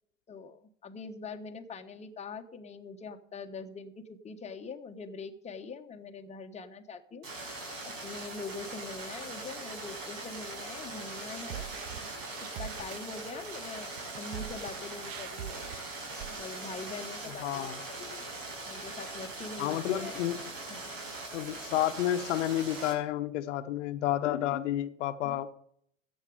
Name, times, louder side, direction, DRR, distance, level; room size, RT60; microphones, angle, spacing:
voice 1, 0.3-7.3 7.8-11.7 12.6-15.7 16.3-18.3 18.7-20.3 20.7-21.0 25.2-25.3, left 4 dB, 15° left, 1.2 m, -43 dB
sound 1, 7.2-22.9, right 2 dB, 70° right, 6.3 m, -41 dB
sound 2, 11.4-16.6, right 12 dB, 50° right, 0.7 m, -44 dB
voice 2, 17.4-17.8 19.6-20.5 21.3-25.5, left 12 dB, 65° left, 1.0 m, -30 dB
14.5 x 9.0 x 5.0 m
hypercardioid pair, 90°, 39 cm